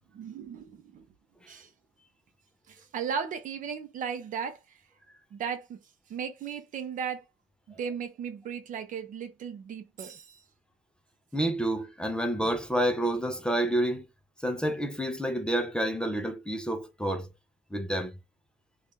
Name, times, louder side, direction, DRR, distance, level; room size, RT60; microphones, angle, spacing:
voice 1, 0.1-1.1 1.5-1.7 2.7-4.8 5.3-5.8 6.1-7.2 7.8-10.4, right 7 dB, 50° right, 0.6 m, -36 dB
voice 2, 11.3-14.0 14.4-17.3 17.7-18.1, right 1 dB, 5° left, 0.5 m, -29 dB
2.6 x 2.3 x 3.6 m
cardioid pair, 110°, 17 cm